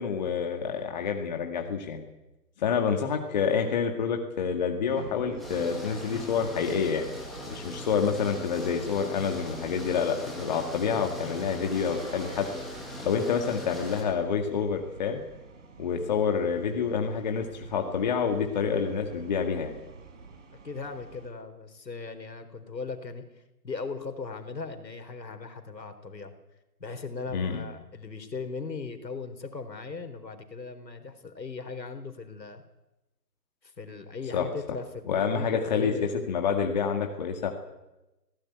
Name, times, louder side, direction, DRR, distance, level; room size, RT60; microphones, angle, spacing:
voice 1, 0.0-2.0 2.6-7.1 7.5-12.5 13.0-15.2 15.8-19.8 27.3-27.6 34.3-34.4 35.1-35.9 36.3-37.5, left 6 dB, 25° left, 4 dB, 2.0 m, -28 dB
sound 1, 4.9-21.3, right 4 dB, 45° right, 4.4 m, -47 dB
sound 2, 5.4-14.0, left 1 dB, ahead, 1.6 m, -40 dB
voice 2, 20.6-23.2 23.6-26.3 26.8-32.6 33.6-36.2, left 4 dB, 80° left, 8 dB, 4.2 m, -38 dB
20.0 x 17.5 x 9.4 m, 1.0 s
hypercardioid pair, 165°, 50 cm